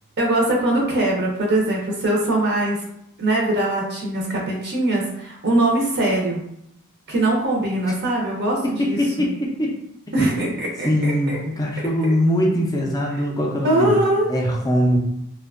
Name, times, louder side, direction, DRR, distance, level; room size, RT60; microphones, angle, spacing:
voice 1, 0.2-2.8 3.2-6.4 7.1-9.0 10.1-11.4 13.6-14.3, right 1 dB, 50° right, -2 dB, 0.5 m, -21 dB
voice 2, 8.6-9.8 10.2-10.4 10.8-14.0 14.3-15.0, equal, 15° left, -1 dB, 0.4 m, -21 dB
2.5 x 2.2 x 2.4 m, 0.76 s
head